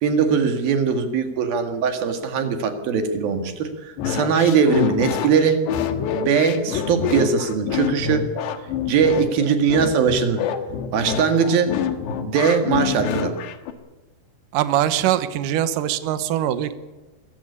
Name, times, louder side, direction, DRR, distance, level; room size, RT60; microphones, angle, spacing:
voice 1, 0.0-5.6 6.1-8.3 8.9-10.4 10.9-11.8 12.2-13.4, right 6 dB, 60° right, 7 dB, 3.4 m, -20 dB
sound 1, 4.0-13.7, left 8 dB, 70° left, 3.4 m, -26 dB
voice 2, 14.5-16.7, right 11 dB, 75° right, 12 dB, 1.9 m, -22 dB
23.5 x 15.0 x 9.9 m, 1.2 s
omnidirectional pair, 5.4 m